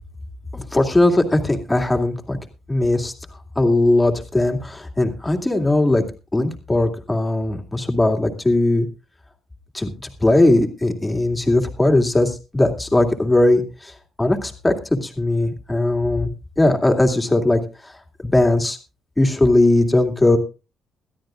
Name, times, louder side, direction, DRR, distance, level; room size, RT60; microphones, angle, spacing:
voice 1, 0.5-2.4 2.7-3.1 3.6-6.0 6.3-8.8 9.7-13.9 14.2-16.3 16.6-17.6 18.2-18.8 19.2-20.4, left 2 dB, 15° left, 4 dB, 2.4 m, -19 dB
20.5 x 13.0 x 2.5 m, 0.29 s
cardioid pair, 90°, 0 cm